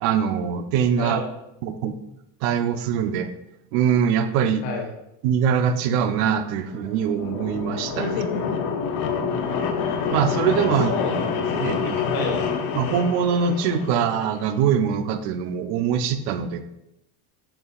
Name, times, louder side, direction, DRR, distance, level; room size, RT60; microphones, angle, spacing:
voice 1, 0.0-1.2 1.6-1.9 2.4-3.3 3.7-4.6 5.2-8.2 10.1-10.9 11.6-12.0 12.7-16.6, right 7 dB, 70° right, 9 dB, 0.7 m, -23 dB
voice 2, 1.0-1.3 4.6-4.9 8.0-8.6 10.5-11.7 12.1-12.4, left 4 dB, 65° left, -1 dB, 1.4 m, -30 dB
sound 1, 6.6-14.5, left 6 dB, 45° left, 0.8 m, -27 dB
6.8 x 5.7 x 2.4 m, 0.84 s
cardioid pair, 145°, 49 cm